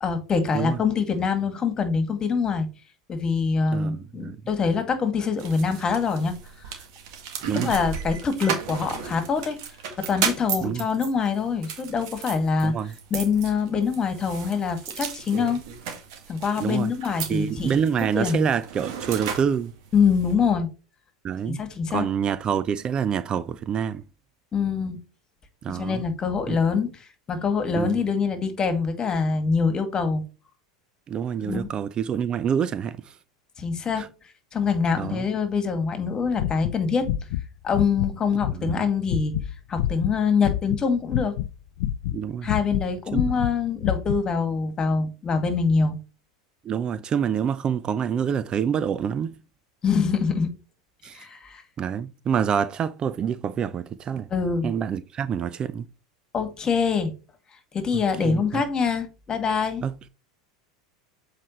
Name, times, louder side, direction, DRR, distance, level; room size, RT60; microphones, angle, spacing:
voice 1, 0.0-2.7 3.1-6.4 7.6-9.6 10.0-12.7 13.1-15.6 16.3-17.8 18.1-18.5 19.9-20.7 21.5-22.1 24.5-25.0 25.7-30.2 31.4-31.7 33.6-34.1 34.5-37.1 37.6-39.3 39.7-41.3 42.4-46.0 49.8-50.5 51.1-51.6 54.3-54.7 56.3-57.1 57.7-59.8, left 5 dB, 30° left, 2.0 m, -24 dB
voice 2, 3.7-4.4 7.5-7.7 10.6-10.8 12.6-12.9 16.6-16.9 17.3-19.7 21.2-21.6 21.9-24.0 25.6-26.0 26.5-26.6 27.8-28.0 31.1-33.1 34.0-34.1 35.0-35.3 38.5-38.8 42.1-42.5 43.1-43.2 46.7-49.4 51.0-51.2 51.8-54.3 54.6-55.9 57.9-58.6 59.8-60.1, right 7 dB, 35° right, 0.4 m, -27 dB
sound 1, 5.4-20.3, right 7 dB, 65° right, 1.9 m, -35 dB
sound 2, 36.3-37.4 37.7-38.1 38.4-40.8 41.1-42.9 43.1-44.2, left 12 dB, 65° left, 0.4 m, -27 dB
7.6 x 4.8 x 3.1 m
hypercardioid pair, 90°, 3 cm